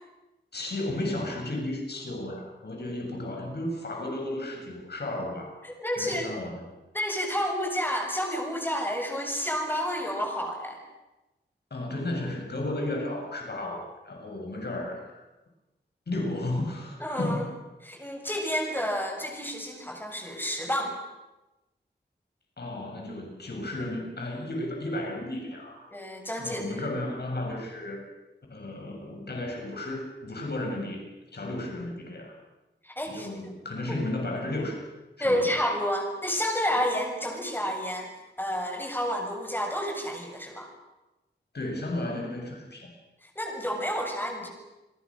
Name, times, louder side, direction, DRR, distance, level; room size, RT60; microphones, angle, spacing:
voice 1, 0.5-5.5 6.0-6.6 11.7-15.1 16.1-17.5 22.6-25.9 26.4-28.0 28.5-31.0 31.3-32.3 33.1-34.8 35.2-35.5 41.5-42.9, left 1 dB, 65° left, 1 dB, 7.7 m, -33 dB
voice 2, 5.6-6.3 6.9-10.8 17.0-17.5 17.8-21.0 25.9-26.9 32.8-33.3 33.9-34.0 35.2-38.1 38.4-40.7 43.2-44.5, equal, 10° left, 2 dB, 7.1 m, -30 dB
29.5 x 22.0 x 6.6 m, 1.0 s
wide cardioid pair, 100°, 18 cm